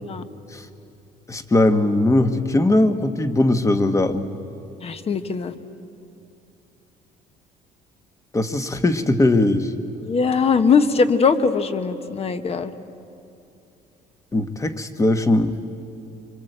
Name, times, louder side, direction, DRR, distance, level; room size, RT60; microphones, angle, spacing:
voice 1, 1.3-4.3 8.3-9.7 14.3-15.6, left 2 dB, 20° left, 9 dB, 1.4 m, -19 dB
voice 2, 4.8-5.5 10.0-12.7, left 5 dB, 35° left, 9 dB, 1.3 m, -20 dB
26.0 x 25.0 x 8.0 m, 2.7 s
cardioid pair, 110°, 17 cm